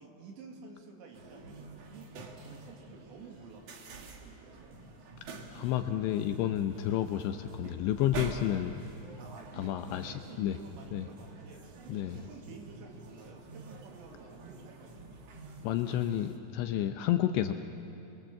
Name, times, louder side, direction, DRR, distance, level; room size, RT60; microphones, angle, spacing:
voice 1, 0.0-4.7 9.2-11.7 11.9-15.4, right 4 dB, 70° right, 1 dB, 4.2 m, -51 dB
sound 1, 1.1-16.4, right 3 dB, 90° right, 1.4 m, -47 dB
voice 2, 5.5-8.7 9.6-10.6 10.9-11.0 11.9-12.2 15.6-17.5, left 12 dB, 80° left, 7 dB, 2.7 m, -30 dB
29.5 x 21.5 x 7.4 m, 3.0 s
omnidirectional pair, 5.7 m